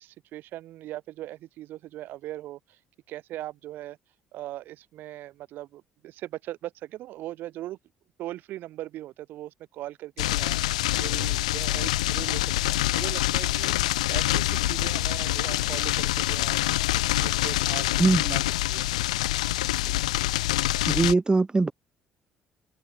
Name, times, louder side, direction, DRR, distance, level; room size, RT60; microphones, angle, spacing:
voice 1, 0.0-2.8 3.1-4.0 4.3-7.8 8.2-17.9 18.3-18.4 18.7-18.9 19.8-19.9, right 14 dB, 70° right, 1.8 m, -40 dB
sound 1, 10.2-21.1, left 16 dB, 90° left, 0.7 m, -26 dB
voice 2, 18.0-18.4 20.8-21.7, right 3 dB, 25° right, 1.9 m, -22 dB
hypercardioid pair, 55°, 4 cm